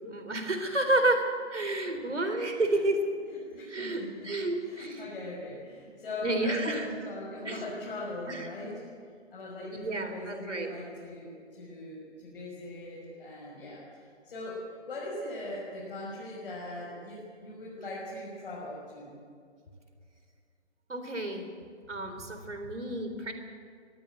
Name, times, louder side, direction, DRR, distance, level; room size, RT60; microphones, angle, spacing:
voice 1, 0.1-3.0 3.7-5.1 6.2-6.9 7.4-7.6 8.3-8.5 9.6-10.7 20.9-21.5 21.9-23.3, right 2 dB, 85° right, 6 dB, 3.9 m, -30 dB
voice 2, 3.3-4.1 4.6-8.9 9.3-13.8 14.2-19.1, left 1 dB, 55° left, -6 dB, 6.3 m, -40 dB
22.5 x 14.5 x 8.0 m, 2.2 s
figure-of-eight pair, 145°, 35 cm